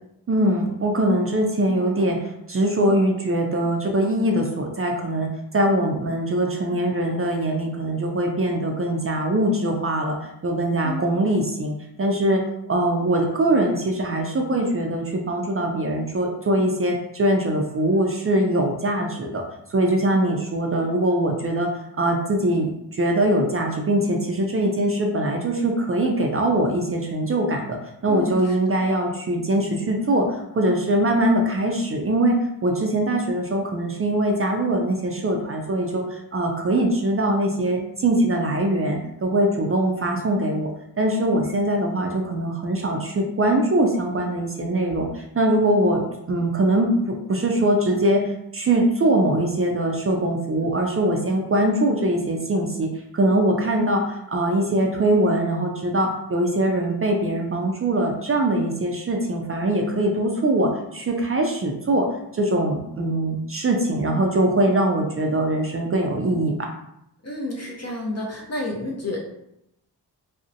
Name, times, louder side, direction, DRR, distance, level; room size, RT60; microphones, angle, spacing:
voice 1, 0.3-19.4 19.7-21.7 22.0-27.8 28.0-40.7 41.0-46.0 46.3-62.1 62.3-66.7, right 1 dB, 35° right, 1 dB, 0.4 m, -22 dB
voice 2, 28.1-28.6 67.2-69.2, left 2 dB, 40° left, -2 dB, 0.5 m, -30 dB
2.5 x 2.0 x 2.6 m, 0.80 s
cardioid pair, 60°, 41 cm